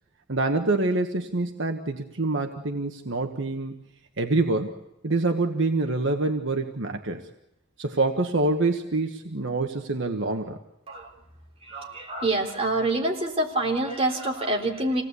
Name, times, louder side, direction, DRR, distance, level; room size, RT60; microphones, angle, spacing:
voice 1, 0.3-3.7 4.2-4.7 5.0-7.2 7.8-10.6, right 2 dB, 65° right, 4 dB, 1.4 m, -26 dB
voice 2, 11.6-15.0, right 2 dB, 30° right, 0 dB, 3.6 m, -26 dB
26.5 x 18.0 x 8.3 m, 0.88 s
head